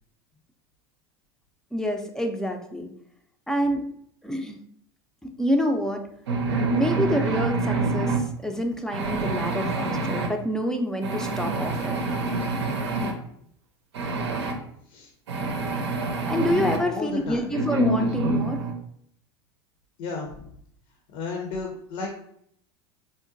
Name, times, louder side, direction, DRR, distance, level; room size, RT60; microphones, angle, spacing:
voice 1, 1.7-2.9 3.5-3.9 4.2-4.6 5.2-6.1 6.7-12.0 16.3-18.6, equal, 5° left, 4 dB, 0.4 m, -27 dB
sound 1, 6.3-8.2 8.9-10.3 11.0-13.1 13.9-14.5 15.3-16.8 17.5-18.7, right 2 dB, 90° right, 0.6 m, -26 dB
voice 2, 16.8-17.5 20.0-20.5 21.1-22.1, left 4 dB, 55° left, 1 dB, 0.6 m, -33 dB
3.8 x 2.1 x 2.5 m, 0.68 s
hypercardioid pair, 105°, 14 cm